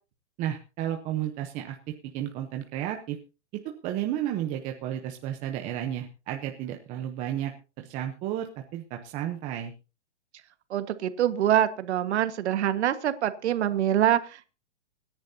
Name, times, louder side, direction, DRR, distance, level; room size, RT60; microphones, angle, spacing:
voice 1, 0.4-1.8 2.1-3.2 3.6-9.7, right 11 dB, 20° right, 4 dB, 0.8 m, -32 dB
voice 2, 10.7-14.5, right 11 dB, 65° right, 10 dB, 1.6 m, -25 dB
26.0 x 10.5 x 2.8 m, 0.32 s
hypercardioid pair, 160°, 36 cm